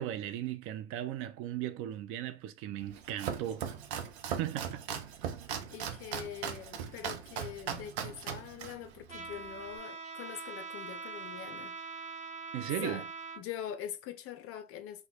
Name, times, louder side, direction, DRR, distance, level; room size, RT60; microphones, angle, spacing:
voice 1, 0.0-3.7 4.3-4.9 12.5-13.0, right 12 dB, 40° right, 0.4 m, -37 dB
Domestic sounds home sounds, 2.8-9.8, right 8 dB, 65° right, 0.8 m, -39 dB
voice 2, 5.7-12.2 12.8-13.0 13.4-15.1, left 10 dB, 40° left, 0.6 m, -43 dB
Trumpet, 9.1-13.4, right 4 dB, 20° right, 1.0 m, -43 dB
2.9 x 2.2 x 4.1 m
hypercardioid pair, 100°, 34 cm